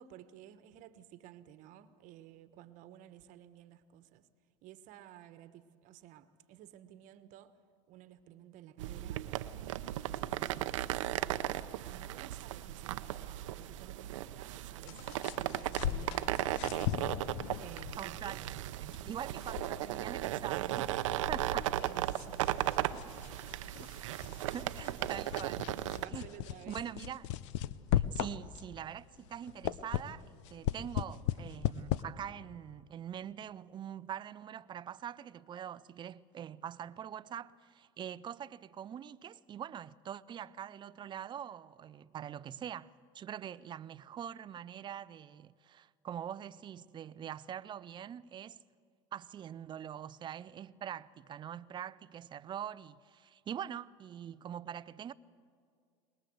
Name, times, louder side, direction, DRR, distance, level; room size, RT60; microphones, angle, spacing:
voice 1, 0.0-4.2 4.6-7.6 7.9-15.0 15.4-18.4 19.3-19.4 21.1-21.4 21.7-22.4 22.9-23.0 24.4-24.6 25.9-26.8, right 12 dB, 55° right, 1.3 m, -54 dB
sound 1, 8.8-26.1, right 14 dB, 80° right, 0.7 m, -36 dB
sound 2, 14.9-28.8 29.2-32.0, left 12 dB, 70° left, 0.7 m, -38 dB
voice 2, 17.9-21.0 21.3-21.6 24.5-25.7 26.1-26.3 26.6-27.3 27.9-48.6 49.1-55.1, right 9 dB, 30° right, 0.5 m, -44 dB
22.0 x 20.5 x 7.9 m
supercardioid pair, 105°, 16 cm